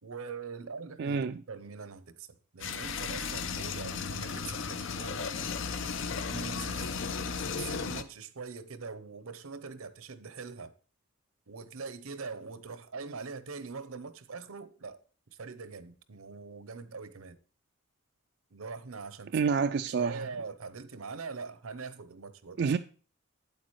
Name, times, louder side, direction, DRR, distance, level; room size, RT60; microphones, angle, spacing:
voice 1, 0.0-5.3 6.1-7.0 7.4-10.7 11.5-15.0 15.3-17.4 18.5-19.4 19.8-22.6, right 4 dB, 85° right, 0.8 m, -43 dB
voice 2, 1.0-1.4 19.3-20.3 22.6-22.8, right 5 dB, 50° right, 0.3 m, -28 dB
sound 1, 2.6-8.0, left 5 dB, 60° left, 0.6 m, -35 dB
8.7 x 8.2 x 3.1 m
head